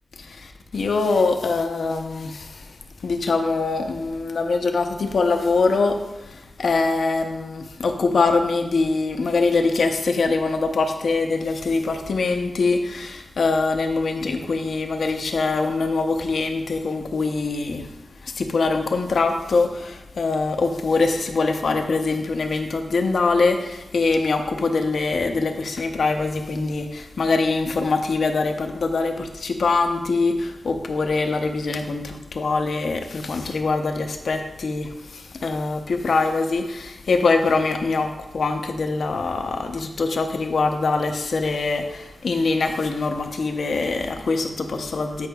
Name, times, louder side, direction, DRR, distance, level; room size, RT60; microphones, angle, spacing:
voice 1, 0.2-45.3, left 3 dB, 60° left, 5 dB, 0.5 m, -23 dB
8.3 x 5.3 x 2.3 m, 0.99 s
wide cardioid pair, 165°, 0 cm